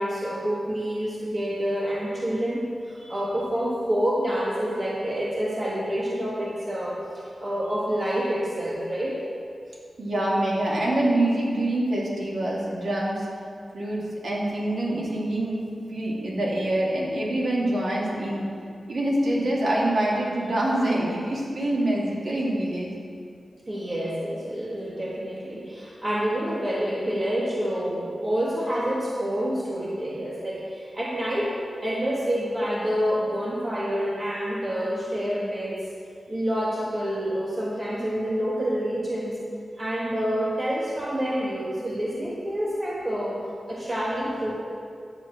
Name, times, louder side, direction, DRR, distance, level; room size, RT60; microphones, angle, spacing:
voice 1, 0.0-9.2 23.7-35.8 36.3-39.4 39.8-44.5, equal, 25° right, -5 dB, 1.4 m, -28 dB
voice 2, 10.0-13.3 13.7-15.6 15.9-18.5 18.9-23.0, right 1 dB, 60° right, -4 dB, 2.8 m, -25 dB
10.5 x 6.9 x 7.7 m, 2.3 s
wide cardioid pair, 160°, 0 cm